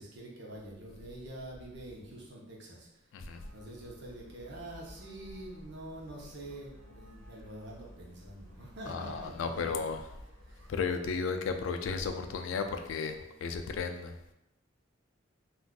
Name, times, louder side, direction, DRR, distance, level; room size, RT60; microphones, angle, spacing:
voice 1, 0.0-2.9 3.2-9.8 10.4-10.7 11.2-11.4, right 1 dB, 60° right, -3 dB, 0.8 m, -46 dB
sound 1, 3.3-10.9, equal, 50° left, 0.8 m, -53 dB
voice 2, 8.9-10.1 10.7-14.1, left 5 dB, 75° left, 7 dB, 0.3 m, -34 dB
3.6 x 2.4 x 2.3 m, 0.89 s
head